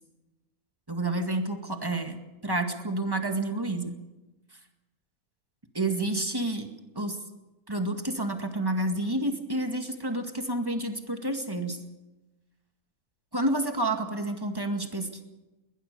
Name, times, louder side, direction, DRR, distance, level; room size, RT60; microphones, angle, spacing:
voice 1, 0.9-4.0 5.7-6.7 7.0-7.2 7.7-11.8 13.3-15.2, right 2 dB, 15° right, 5 dB, 2.0 m, -29 dB
21.0 x 20.0 x 6.8 m, 1.1 s
omnidirectional pair, 1.6 m